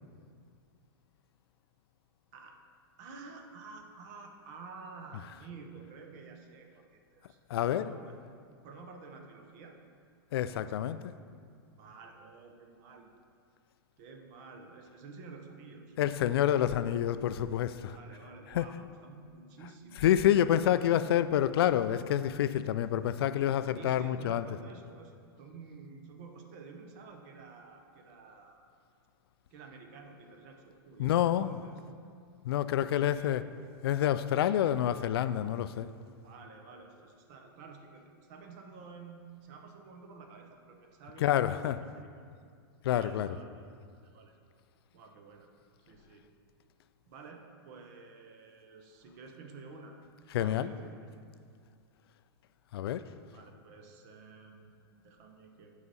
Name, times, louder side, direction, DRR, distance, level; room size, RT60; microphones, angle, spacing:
voice 1, 3.0-7.4 7.7-8.2 8.6-9.8 11.8-13.1 14.0-16.3 17.9-20.0 23.7-28.6 29.5-31.8 32.8-33.3 36.2-42.0 42.9-43.7 43.9-44.3 44.9-45.5 45.9-46.3 47.1-50.0 50.4-51.1 53.3-55.7, right 4 dB, 45° right, 4 dB, 0.8 m, -51 dB
voice 2, 7.5-7.8 10.3-11.2 16.0-18.0 18.5-18.7 20.0-24.4 31.0-31.6 32.4-33.4 33.8-35.9 41.2-41.8 42.8-43.4 50.3-50.7 52.7-53.1, left 11 dB, 70° left, 13 dB, 0.4 m, -28 dB
9.6 x 4.9 x 4.1 m, 2.2 s
supercardioid pair, 150°, 13 cm